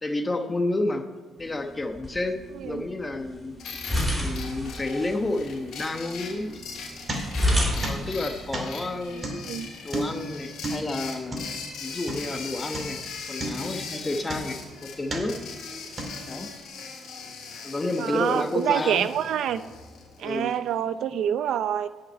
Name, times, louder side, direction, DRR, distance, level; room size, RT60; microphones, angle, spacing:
voice 1, 0.0-1.0 1.4-2.4 2.6-3.6 4.2-6.6 7.8-9.4 9.8-11.5 11.8-13.0 13.3-15.4 16.3-16.5 17.6-19.1 20.2-20.5, left 2 dB, 20° left, 6 dB, 1.0 m, -30 dB
sound 1, 1.4-9.4, left 1 dB, 5° left, 4.0 m, -32 dB
sound 2, 3.6-20.6, left 5 dB, 75° left, 3.0 m, -40 dB
sound 3, 6.5-7.6 7.8-12.4 12.7-13.1 13.4-14.7 15.1-15.5 16.0-16.5, right 1 dB, 30° right, 2.4 m, -34 dB
voice 2, 9.2-9.7 18.0-19.6 20.2-21.9, right 9 dB, 75° right, 13 dB, 0.5 m, -27 dB
11.0 x 5.8 x 8.8 m, 1.3 s
cardioid pair, 110°, 0 cm